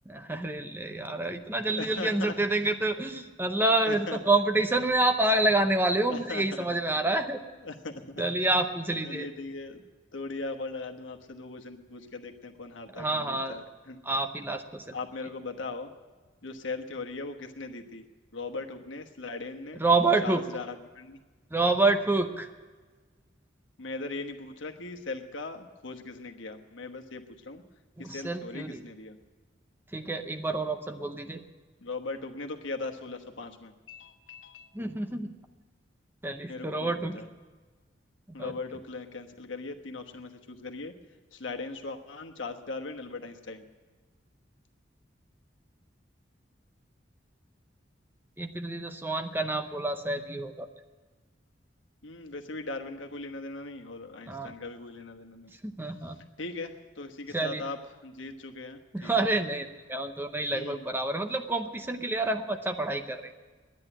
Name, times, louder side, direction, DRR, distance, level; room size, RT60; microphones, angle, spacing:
voice 1, 0.1-7.4 8.2-9.3 13.0-13.6 14.0-14.8 19.8-20.4 21.5-22.5 28.0-28.8 29.9-31.4 34.7-35.3 36.2-37.2 38.4-38.5 48.4-50.7 54.3-54.5 55.6-56.2 57.3-57.6 58.9-63.3, right 2 dB, 10° right, 5 dB, 0.6 m, -28 dB
voice 2, 1.7-2.3 2.6-2.8 3.8-4.2 6.1-6.7 7.6-8.2 9.0-9.8 10.1-14.0 14.9-15.9 16.4-18.1 18.3-19.8 20.2-21.2 23.8-27.6 28.0-29.2 31.8-34.7 36.5-37.3 38.3-40.9 41.3-43.6 52.0-55.5 56.4-59.3 60.5-60.9, left 3 dB, 85° left, 4 dB, 1.2 m, -39 dB
11.0 x 9.7 x 10.0 m, 1.4 s
head